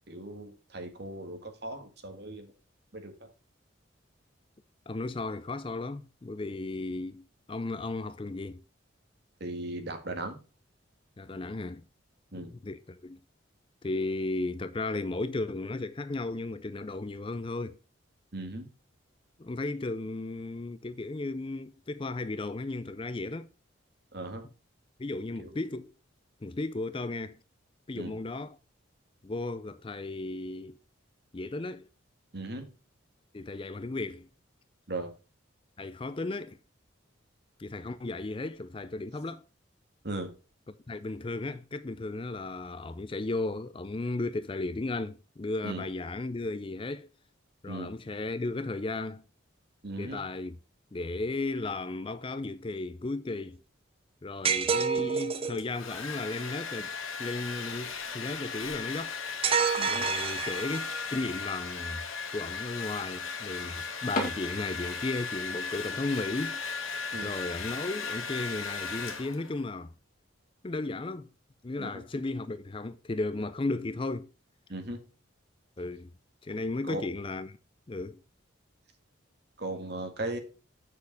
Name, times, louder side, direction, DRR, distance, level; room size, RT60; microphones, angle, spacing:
voice 1, 0.1-2.5 2.9-3.3 9.4-10.4 12.3-12.5 18.3-18.7 24.1-24.4 25.4-25.5 28.0-28.1 32.3-32.7 34.9-35.1 40.0-40.3 45.6-45.9 47.7-47.9 49.8-50.2 59.8-60.1 67.1-67.3 71.8-72.0 74.7-75.0 76.8-77.0 79.6-80.4, right 2 dB, 50° right, 1.8 m, -37 dB
voice 2, 4.9-7.2 7.5-8.6 11.2-11.8 12.3-13.2 13.8-17.8 19.4-23.5 25.0-25.9 26.4-27.4 27.9-28.6 29.2-30.8 31.3-31.9 33.3-34.3 35.8-36.6 37.6-39.4 40.9-47.1 47.6-49.2 50.0-50.6 50.9-53.6 54.2-56.9 57.2-59.2 59.9-62.0 62.3-66.6 67.2-69.9 70.6-71.3 71.6-74.3 75.8-76.1 76.4-77.6 77.9-78.2, left 2 dB, 25° left, 0.4 m, -35 dB
sound 1, 54.4-55.6 59.4-61.0, right 6 dB, 30° right, 0.5 m, -28 dB
Domestic sounds home sounds, 55.3-69.6, left 5 dB, 80° left, 1.6 m, -37 dB
sound 2, 64.1-65.9 66.3-66.4 66.9-67.1 67.5-67.6 67.8-67.9 68.7-69.0, left 1 dB, 40° left, 2.3 m, -37 dB
7.5 x 6.5 x 3.9 m
head